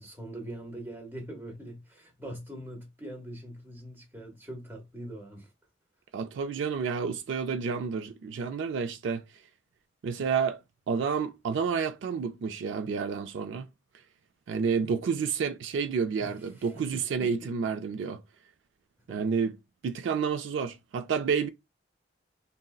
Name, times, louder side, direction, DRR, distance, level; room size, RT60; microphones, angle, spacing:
voice 1, 0.0-5.5 16.2-17.3 19.1-19.2, right 1 dB, 10° right, 0.8 m, -43 dB
voice 2, 6.1-9.2 10.0-10.6 10.9-13.7 14.5-18.2 19.1-19.6 19.8-21.5, right 6 dB, 75° right, 0.3 m, -30 dB
3.7 x 2.1 x 2.3 m
head